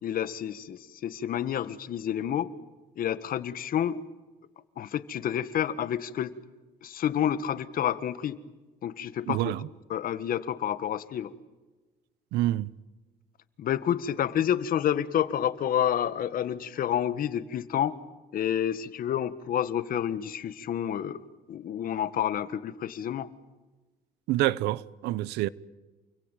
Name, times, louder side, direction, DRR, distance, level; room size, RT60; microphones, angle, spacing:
voice 1, 0.0-2.5 3.0-4.0 4.8-6.3 6.8-8.4 8.8-9.5 9.9-11.3 13.6-18.0 18.3-23.3, left 10 dB, 55° left, 1.7 m, -29 dB
voice 2, 9.3-9.6 12.3-12.7 24.3-25.5, right 15 dB, 90° right, 0.9 m, -27 dB
29.0 x 22.0 x 9.2 m
cardioid pair, 110°, 17 cm